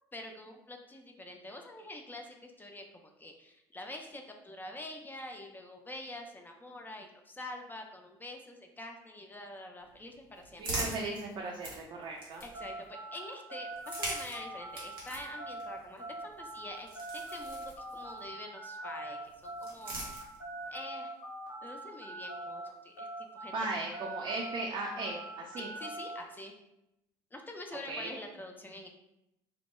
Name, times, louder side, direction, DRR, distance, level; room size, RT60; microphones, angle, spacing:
voice 1, 0.1-2.8 3.2-10.8 12.4-19.9 20.7-21.1 21.6-23.1 23.3-23.6 25.6-26.5 27.3-28.9, left 1 dB, 15° left, 3 dB, 0.4 m, -46 dB
sound 1, 9.8-12.8 13.7-18.3 19.2-20.7, right 2 dB, 90° right, 0.6 m, -43 dB
voice 2, 10.6-12.4 23.5-25.7 27.9-28.1, right 2 dB, 45° right, -1 dB, 0.4 m, -37 dB
sound 2, 12.5-22.7 23.0-26.2, right 1 dB, 85° left, 0.7 m, -43 dB
2.2 x 2.1 x 2.9 m, 0.85 s
hypercardioid pair, 55°, 11 cm